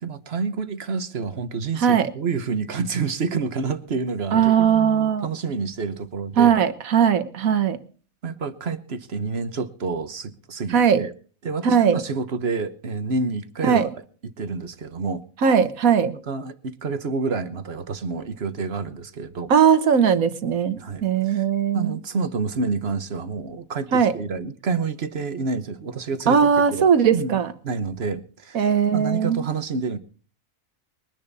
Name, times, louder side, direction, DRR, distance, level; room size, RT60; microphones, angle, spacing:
voice 1, 0.0-6.5 8.2-11.1 11.4-13.9 14.2-15.2 16.1-19.5 20.8-21.5 21.7-28.6 28.9-30.0, right 4 dB, 50° right, 11 dB, 1.3 m, -28 dB
voice 2, 4.3-5.3 6.4-7.8 10.7-11.0 11.6-12.0 13.6-13.9 15.4-16.1 19.5-22.0 23.9-24.1 26.3-27.5 28.6-29.4, right 7 dB, 90° right, 12 dB, 1.6 m, -19 dB
22.5 x 10.5 x 4.1 m, 0.41 s
omnidirectional pair, 1.4 m